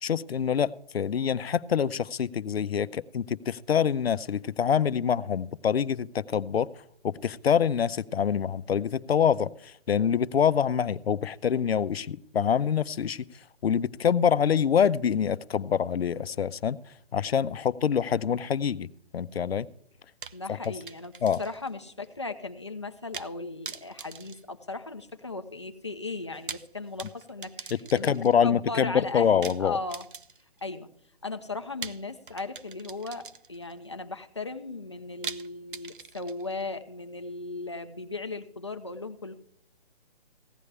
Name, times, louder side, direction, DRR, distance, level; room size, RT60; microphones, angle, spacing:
voice 1, 0.0-6.7 7.0-13.3 13.6-16.8 17.1-18.9 19.1-19.7 21.2-21.4 27.7-29.8, left 8 dB, 75° left, 0.6 m, -25 dB
sound 1, 20.2-21.7 22.0-22.1 23.1-23.4 23.7-25.2 26.2-28.4 29.4-30.6 31.8-33.7 35.2-36.6, right 6 dB, 55° right, 0.5 m, -42 dB
voice 2, 20.3-21.1 21.4-28.1 28.4-30.1 30.6-30.9 31.2-39.3, left 3 dB, 30° left, 0.6 m, -37 dB
16.0 x 11.0 x 3.3 m
hypercardioid pair, 180°, 31 cm